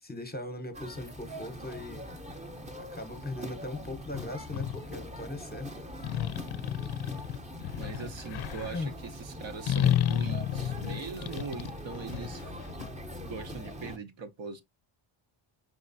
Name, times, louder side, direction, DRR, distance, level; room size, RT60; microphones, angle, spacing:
voice 1, 0.0-2.1 2.8-5.9 8.7-8.9, left 2 dB, 20° left, 0.8 m, -39 dB
sound 1, 0.7-14.0, equal, 15° right, 0.7 m, -42 dB
sound 2, 4.1-4.8 6.0-8.8 9.7-12.9, left 11 dB, 55° left, 0.5 m, -31 dB
voice 2, 7.8-12.5 13.2-14.6, right 5 dB, 65° right, 0.9 m, -41 dB
5.0 x 3.0 x 2.6 m
wide cardioid pair, 120°, 49 cm